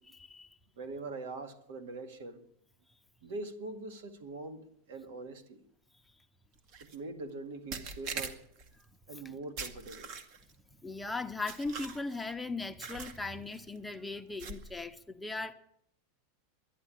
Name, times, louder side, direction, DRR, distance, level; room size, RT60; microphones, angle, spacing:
voice 1, 0.1-0.5 10.8-15.5, left 3 dB, 5° left, 0.7 m, -38 dB
voice 2, 0.8-2.4 3.2-5.6 6.8-8.4 9.1-10.1, right 3 dB, 75° right, 2.0 m, -43 dB
sound 1, 6.7-7.0 7.7-8.7 9.6-10.5 11.5-12.3 12.8-13.2 13.5-13.8 14.4-14.8, right 5 dB, 50° right, 1.8 m, -42 dB
11.0 x 11.0 x 10.0 m
supercardioid pair, 140°, 0 cm